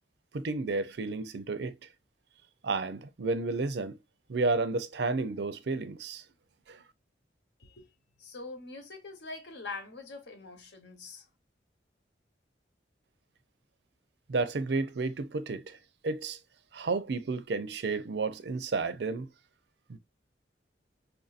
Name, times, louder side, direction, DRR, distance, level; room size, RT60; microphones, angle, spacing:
voice 1, 0.3-1.7 2.6-4.0 4.3-6.2 6.7-6.8 14.3-15.8 16.0-16.4 16.7-19.3 19.9-20.0, right 3 dB, 70° right, 0.5 m, -31 dB
voice 2, 7.6-7.9 8.2-11.2, left 3 dB, 75° left, 1.2 m, -43 dB
4.6 x 2.6 x 2.4 m
head